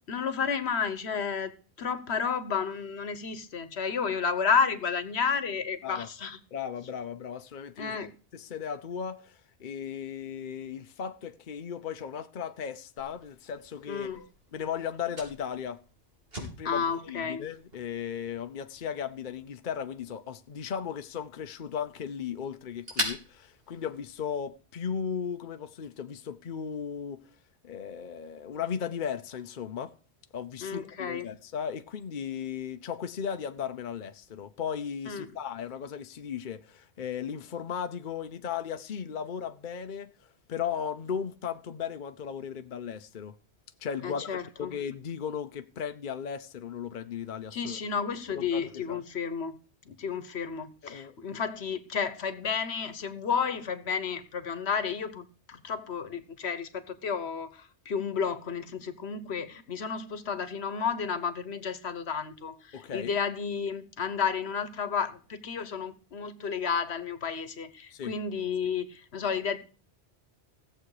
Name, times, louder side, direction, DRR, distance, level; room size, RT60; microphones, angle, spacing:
voice 1, 0.1-1.5 1.8-6.4 7.8-8.1 13.9-14.2 16.6-17.4 30.6-31.3 35.1-35.3 44.0-44.7 47.5-49.6 49.9-69.6, left 6 dB, 70° left, 1.3 m, -31 dB
voice 2, 6.5-8.0 8.3-14.1 14.5-15.8 16.4-27.2 27.6-29.9 30.3-40.1 40.5-43.4 43.8-47.8 48.3-49.0 50.8-51.1 62.7-63.1 67.9-68.2, left 7 dB, 50° left, 0.8 m, -36 dB
Fire, 13.0-24.5, equal, 60° right, 4.0 m, -43 dB
16.5 x 7.6 x 4.9 m
omnidirectional pair, 1.1 m